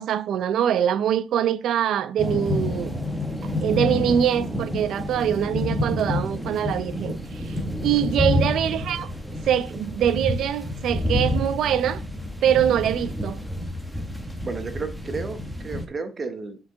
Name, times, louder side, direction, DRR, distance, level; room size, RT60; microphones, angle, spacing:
voice 1, 0.0-2.9 3.6-9.1 9.5-12.0 12.4-13.4, right 9 dB, 60° right, 0.5 m, -23 dB
sound 1, 2.2-15.8, left 1 dB, ahead, 0.9 m, -28 dB
voice 2, 14.4-16.6, right 4 dB, 25° right, 0.9 m, -32 dB
9.7 x 4.7 x 3.5 m
cardioid pair, 160°, 0 cm